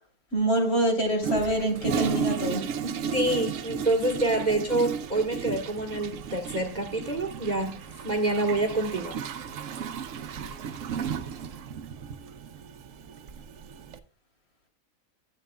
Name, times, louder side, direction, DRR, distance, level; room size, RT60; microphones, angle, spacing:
voice 1, 0.3-2.6, right 1 dB, 45° left, 1 dB, 3.4 m, -25 dB
Toilet flush, 1.2-14.0, right 7 dB, 70° right, 1.0 m, -34 dB
voice 2, 2.8-7.8 8.0-9.2, right 2 dB, 35° right, 3 dB, 1.4 m, -27 dB
13.0 x 8.9 x 2.2 m, 0.39 s
omnidirectional pair, 1.5 m